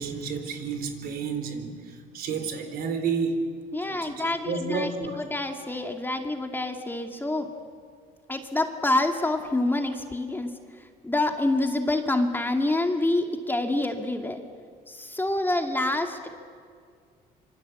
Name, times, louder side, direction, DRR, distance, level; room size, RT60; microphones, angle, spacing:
voice 1, 0.0-3.5 3.8-5.2, right 5 dB, 65° right, 7 dB, 4.1 m, -31 dB
voice 2, 3.7-7.5 8.3-14.4 14.9-16.3, left 2 dB, 10° left, 4 dB, 2.3 m, -27 dB
26.0 x 25.5 x 8.4 m, 2.1 s
cardioid pair, 110°, 17 cm